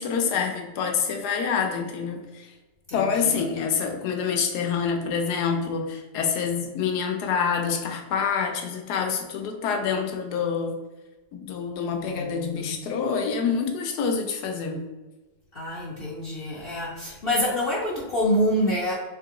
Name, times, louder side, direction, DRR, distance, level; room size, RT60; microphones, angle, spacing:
voice 1, 0.0-2.5 2.9-10.8 11.3-14.8, left 6 dB, 90° left, 3 dB, 1.2 m, -27 dB
voice 2, 2.9-3.4 11.9-12.7 15.5-18.9, equal, 55° left, -5 dB, 0.7 m, -27 dB
3.6 x 2.8 x 3.7 m, 1.2 s
omnidirectional pair, 1.7 m